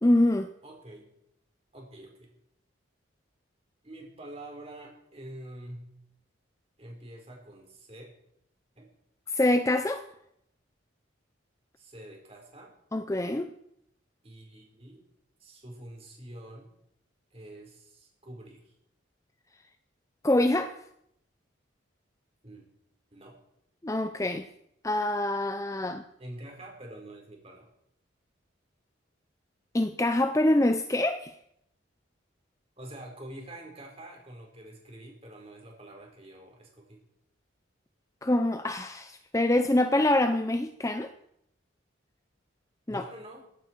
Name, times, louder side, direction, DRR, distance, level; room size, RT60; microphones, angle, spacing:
voice 1, 0.0-0.5 9.3-10.0 12.9-13.5 20.2-20.7 23.8-24.5 24.8-26.0 29.7-31.3 38.2-41.1 42.9-43.0, left 1 dB, 15° left, 9 dB, 0.5 m, -25 dB
voice 2, 0.6-1.1 1.7-2.3 3.8-5.9 6.8-8.1 8.8-8.9 11.8-12.7 14.2-15.0 15.4-16.7 17.3-18.7 22.4-22.6 23.1-23.4 26.2-27.7 32.8-37.0 42.9-43.5, right 1 dB, 30° right, 1 dB, 4.6 m, -46 dB
17.0 x 14.5 x 4.6 m, 0.75 s
head